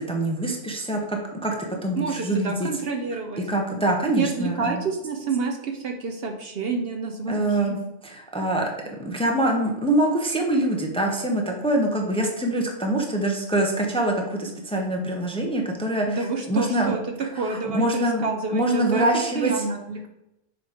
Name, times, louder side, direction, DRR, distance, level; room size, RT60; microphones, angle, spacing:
voice 1, 0.0-2.7 3.4-4.8 7.3-7.8 8.0-17.0 17.3-19.6, right 1 dB, 5° left, 1 dB, 0.7 m, -25 dB
voice 2, 2.0-3.4 4.1-7.8 16.1-17.0 17.4-19.1 19.3-20.1, right 4 dB, 60° right, 4 dB, 0.8 m, -28 dB
6.9 x 3.1 x 4.9 m, 0.87 s
omnidirectional pair, 1.3 m